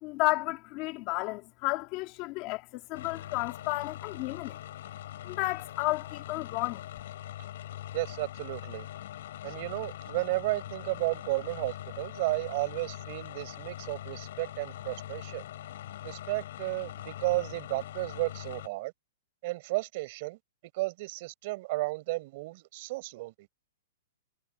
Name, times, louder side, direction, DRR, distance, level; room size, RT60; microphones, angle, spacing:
voice 1, 0.0-4.6 5.2-6.8, left 21 dB, 30° left, 2.4 m, -32 dB
sound 1, 2.9-18.7, left 12 dB, 55° left, 7.4 m, -42 dB
voice 2, 7.9-8.9 9.4-15.4 16.0-18.9 19.4-20.4 20.7-23.3, right 21 dB, 40° right, 4.4 m, -33 dB
hypercardioid pair, 170°, 0 cm